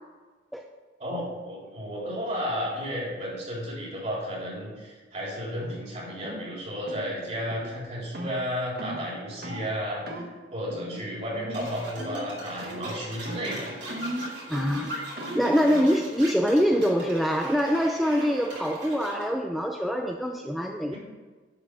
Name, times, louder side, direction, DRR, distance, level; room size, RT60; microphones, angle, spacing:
voice 1, 1.0-10.2 10.5-13.8 15.6-15.8, equal, 40° right, -5 dB, 3.6 m, -33 dB
sound 1, 5.6-5.8 6.2-6.5 6.9-7.1 7.5-7.7 8.1-8.4 8.8-9.0 9.4-9.7 10.1-10.3 10.7-11.1 11.3-11.7 12.0-12.4 12.6-13.0 13.3-15.6, equal, 55° right, 1.3 m, -37 dB
sound 2, 11.5-19.3, right 1 dB, 80° right, 3.1 m, -40 dB
voice 2, 14.5-21.0, equal, ahead, 2 dB, 0.4 m, -25 dB
10.5 x 5.0 x 6.7 m, 1.4 s
head